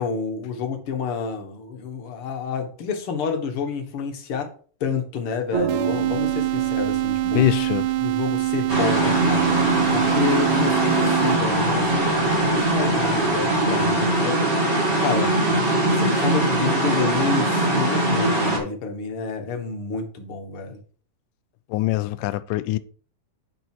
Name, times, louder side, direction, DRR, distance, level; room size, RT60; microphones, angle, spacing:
voice 1, 0.0-4.5 4.8-7.4 8.0-9.5 9.9-14.4 15.0-15.4 15.9-20.8, left 5 dB, 50° left, 2.0 m, -29 dB
sound 1, 5.5-14.1, right 5 dB, 60° right, 3.1 m, -35 dB
sound 2, 5.7-11.7, right 17 dB, 90° right, 2.3 m, -24 dB
voice 2, 7.2-7.9 21.7-22.8, left 16 dB, 85° left, 2.2 m, -23 dB
sound 3, 8.7-18.6, right 1 dB, 20° right, 2.6 m, -21 dB
9.2 x 5.6 x 4.6 m
omnidirectional pair, 3.8 m